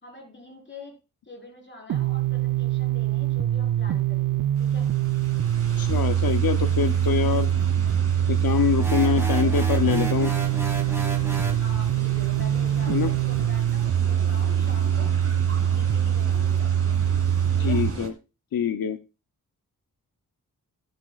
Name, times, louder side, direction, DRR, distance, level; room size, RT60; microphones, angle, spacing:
voice 1, 0.0-0.9 1.3-4.9 9.0-9.7 11.6-15.1 15.7-17.0 17.6-17.8, left 2 dB, 35° left, 0 dB, 4.8 m, -44 dB
sound 1, 1.9-17.9, right 10 dB, 70° right, 0.6 m, -23 dB
sound 2, 4.6-18.1, right 4 dB, 45° right, 2.2 m, -37 dB
voice 2, 5.8-7.5 8.3-10.3 12.9-13.1 17.6-18.1 18.5-19.0, left 8 dB, 90° left, 9 dB, 0.7 m, -24 dB
sound 3, 8.8-11.7, right 1 dB, 10° right, 2.8 m, -33 dB
14.5 x 10.0 x 2.4 m, 0.29 s
wide cardioid pair, 115°, 34 cm